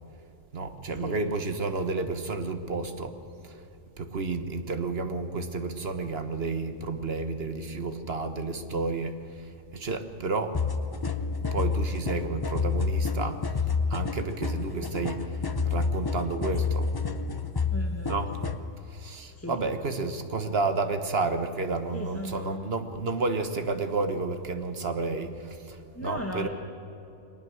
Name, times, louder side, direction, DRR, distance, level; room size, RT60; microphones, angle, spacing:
voice 1, 0.5-3.2 3.4-3.6 4.0-10.6 11.5-16.9 18.1-18.4 18.9-26.5, right 3 dB, 50° right, 8 dB, 1.4 m, -31 dB
sound 1, 10.5-18.6, left 4 dB, 30° left, 0.4 m, -29 dB
voice 2, 17.7-18.2 19.4-19.6 21.9-22.6 25.9-26.5, left 1 dB, 10° left, 1 dB, 1.2 m, -36 dB
23.0 x 19.5 x 6.4 m, 2.9 s
omnidirectional pair, 1.4 m